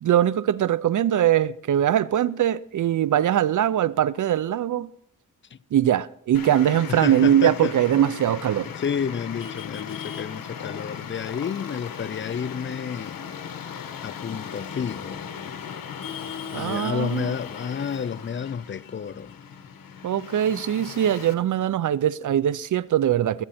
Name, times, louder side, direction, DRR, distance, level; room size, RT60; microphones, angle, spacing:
voice 1, 0.0-4.9 5.7-8.7 16.5-17.3 20.0-23.4, right 11 dB, 65° right, 0.6 m, -22 dB
Traffic noise roadway noise, 6.3-21.3, left 7 dB, 90° left, 1.3 m, -37 dB
voice 2, 6.9-7.7 8.6-13.2 14.0-15.2 16.5-19.3, left 7 dB, 35° left, 0.5 m, -30 dB
22.5 x 8.8 x 4.3 m
cardioid pair, 85°, 33 cm